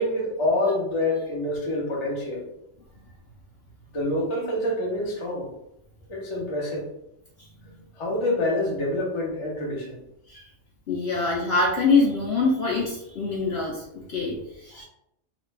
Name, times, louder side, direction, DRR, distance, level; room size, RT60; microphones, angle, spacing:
voice 1, 0.0-2.5 3.9-5.5 6.1-6.9 8.0-10.0 14.7-14.8, left 1 dB, 30° left, -2 dB, 0.7 m, -26 dB
voice 2, 10.9-14.8, left 3 dB, 60° left, -3 dB, 0.8 m, -24 dB
3.0 x 2.4 x 3.1 m, 0.80 s
omnidirectional pair, 1.4 m